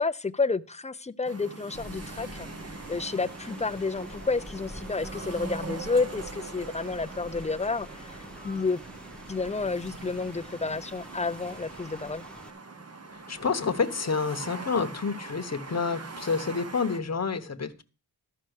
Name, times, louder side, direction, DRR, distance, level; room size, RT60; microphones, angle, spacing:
voice 1, 0.0-2.5 2.9-8.8 9.3-12.3, left 4 dB, 20° left, 0.5 m, -30 dB
sound 1, 1.2-17.0, right 4 dB, 40° right, 1.1 m, -42 dB
Rain, 1.7-12.5, left 1 dB, 5° left, 1.1 m, -47 dB
sound 2, 5.0-5.4 8.3-8.8, left 1 dB, 75° right, 2.1 m, -50 dB
voice 2, 13.1-17.8, left 5 dB, 45° left, 1.0 m, -29 dB
13.0 x 5.4 x 6.5 m
wide cardioid pair, 95°, 37 cm